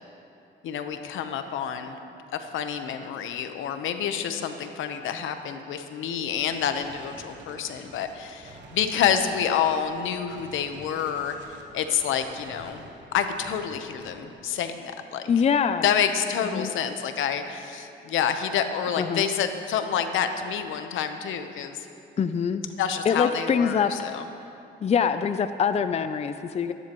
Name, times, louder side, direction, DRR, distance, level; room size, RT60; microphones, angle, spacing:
voice 1, 0.6-2.0 2.3-11.4 11.7-15.3 15.8-21.9 22.8-24.2, left 8 dB, 80° left, 7 dB, 1.0 m, -28 dB
Gunshot gunfire, 6.4-14.4, right 3 dB, 65° right, 1.5 m, -49 dB
voice 2, 15.3-15.8 16.5-16.7 19.0-19.2 22.2-22.6 23.1-23.9 24.8-26.7, left 6 dB, 35° left, 10 dB, 0.5 m, -24 dB
23.5 x 11.0 x 3.1 m, 2.7 s
cardioid pair, 90°, 20 cm